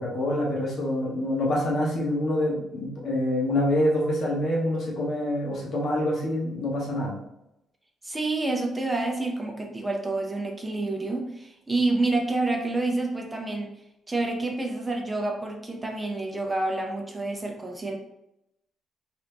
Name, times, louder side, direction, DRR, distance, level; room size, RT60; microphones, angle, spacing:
voice 1, 0.0-7.2, left 1 dB, 60° left, -4 dB, 1.2 m, -26 dB
voice 2, 8.0-13.7 14.1-18.0, right 2 dB, 20° right, 2 dB, 0.6 m, -28 dB
3.0 x 2.6 x 3.4 m, 0.85 s
cardioid pair, 90°, 0 cm